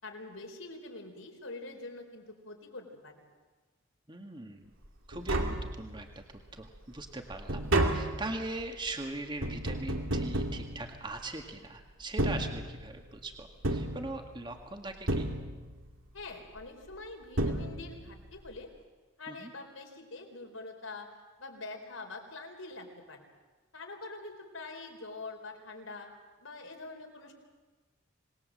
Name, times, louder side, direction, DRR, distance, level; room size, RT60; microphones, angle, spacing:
voice 1, 0.0-3.1 16.1-18.7 19.2-21.1 21.4-23.2 23.7-26.1 26.4-27.3, left 3 dB, 85° left, 3 dB, 4.5 m, -45 dB
voice 2, 4.1-4.7 5.1-6.2 6.5-15.3 19.3-19.5, right 2 dB, 25° right, 4 dB, 1.9 m, -41 dB
Tap, 4.8-4.9 5.1-6.2 6.7-11.4 12.0-13.1 13.6-14.6 15.1-15.9 16.9-17.0 17.4-18.2 18.5-18.6, right 1 dB, 80° right, 2.6 m, -32 dB
27.0 x 20.0 x 7.8 m, 1.3 s
head